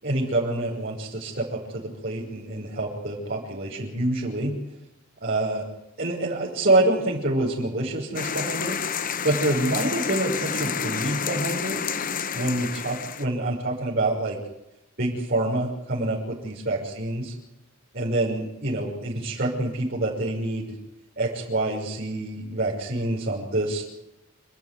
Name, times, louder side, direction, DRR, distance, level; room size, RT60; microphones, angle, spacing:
voice 1, 0.0-4.6 5.2-5.7 6.0-8.8 9.2-11.8 12.3-14.4 15.0-17.3 17.9-20.7 21.2-23.8, right 2 dB, 45° right, -7 dB, 6.3 m, -26 dB
sound 1, 8.2-13.3, left 6 dB, 40° left, 1.0 m, -29 dB
28.5 x 13.0 x 9.7 m, 0.91 s
head